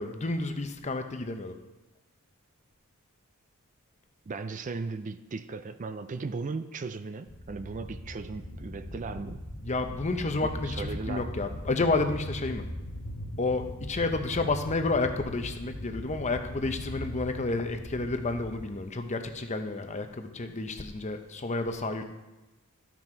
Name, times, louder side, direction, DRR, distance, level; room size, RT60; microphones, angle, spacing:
voice 1, 0.0-1.5 9.6-12.7 13.4-22.0, left 3 dB, 30° left, 7 dB, 0.7 m, -30 dB
voice 2, 4.3-9.5 10.6-11.4, right 4 dB, 35° right, 11 dB, 0.4 m, -37 dB
sound 1, 7.3-18.7, equal, 75° left, 1.5 m, -40 dB
13.0 x 6.1 x 4.5 m, 1.0 s
head